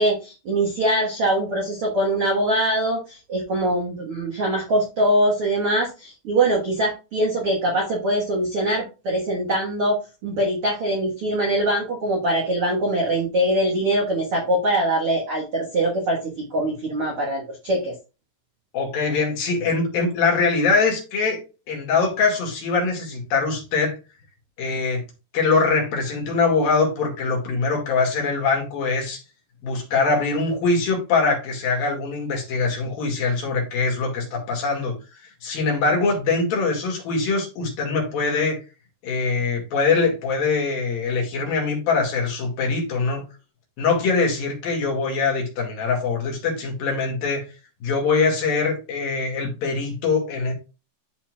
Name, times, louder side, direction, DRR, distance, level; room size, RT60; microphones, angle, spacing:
voice 1, 0.0-17.9, right 1 dB, 85° right, -2 dB, 1.2 m, -23 dB
voice 2, 18.7-21.4 21.7-24.0 24.6-25.0 25.3-29.2 29.6-35.0 35.4-38.6 39.0-43.3 43.8-47.5 47.8-50.5, left 4 dB, 60° left, 0 dB, 3.6 m, -23 dB
12.5 x 4.3 x 2.4 m, 0.30 s
omnidirectional pair, 5.1 m